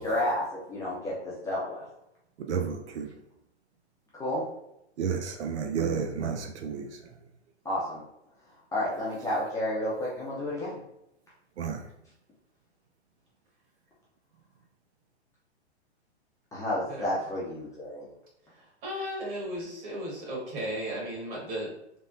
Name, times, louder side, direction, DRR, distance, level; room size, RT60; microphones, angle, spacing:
voice 1, 0.0-1.8 4.1-4.5 7.6-8.0 8.7-10.8 16.5-18.1, left 1 dB, 10° left, -7 dB, 0.5 m, -31 dB
voice 2, 2.4-3.1 5.0-6.9 11.6-11.8, right 6 dB, 80° right, 4 dB, 0.5 m, -31 dB
voice 3, 18.5-21.7, equal, 35° right, -4 dB, 1.5 m, -35 dB
3.4 x 2.1 x 2.6 m, 0.80 s
hypercardioid pair, 125°, 34 cm